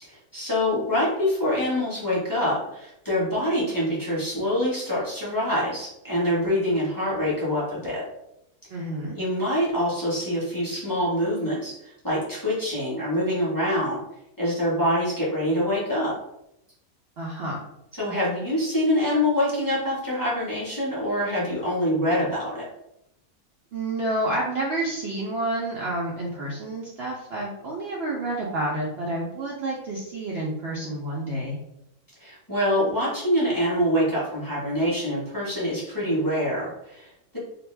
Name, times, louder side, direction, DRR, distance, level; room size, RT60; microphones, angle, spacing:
voice 1, 0.0-8.0 9.1-14.0 14.4-16.2 18.0-22.7 32.2-37.4, equal, 15° left, -7 dB, 0.8 m, -25 dB
voice 2, 8.7-9.2 17.2-17.6 23.7-31.6, right 1 dB, 80° right, -3 dB, 0.5 m, -29 dB
2.5 x 2.1 x 3.1 m, 0.82 s
omnidirectional pair, 1.6 m